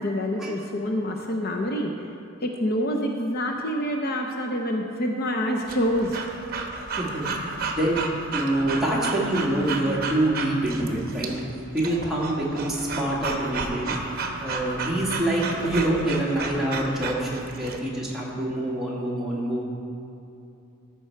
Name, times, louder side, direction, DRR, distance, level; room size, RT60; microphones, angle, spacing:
voice 1, 0.0-1.9 2.4-6.2, equal, 50° left, 2 dB, 0.6 m, -26 dB
Breathing / Dog, 5.7-17.8, right 3 dB, 45° right, 0.9 m, -33 dB
voice 2, 8.3-11.3 11.7-14.0 14.4-19.6, right 1 dB, ahead, -6 dB, 1.7 m, -26 dB
14.0 x 6.1 x 4.5 m, 2.8 s
head